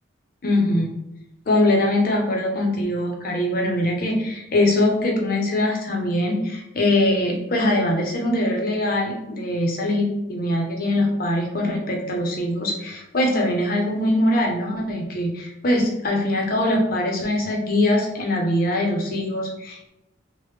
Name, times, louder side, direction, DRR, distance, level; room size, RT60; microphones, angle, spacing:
voice 1, 0.4-0.9 1.5-19.9, left 1 dB, 45° left, 0 dB, 0.6 m, -22 dB
3.2 x 2.0 x 3.1 m, 0.89 s
head